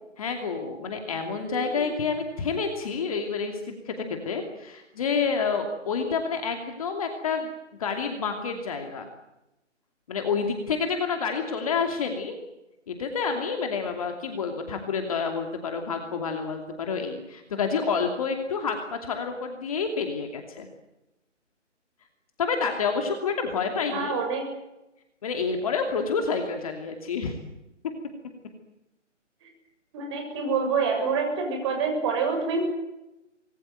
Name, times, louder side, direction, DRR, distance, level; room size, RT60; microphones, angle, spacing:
voice 1, 0.2-3.5 3.8-7.5 7.8-9.1 10.1-12.4 12.9-20.7 22.4-24.2 25.2-27.4, left 5 dB, 30° left, 4 dB, 2.7 m, -28 dB
voice 2, 23.9-24.5 29.9-32.7, right 4 dB, 20° right, 3 dB, 6.8 m, -26 dB
25.0 x 21.0 x 9.3 m, 0.93 s
figure-of-eight pair, 160°, 37 cm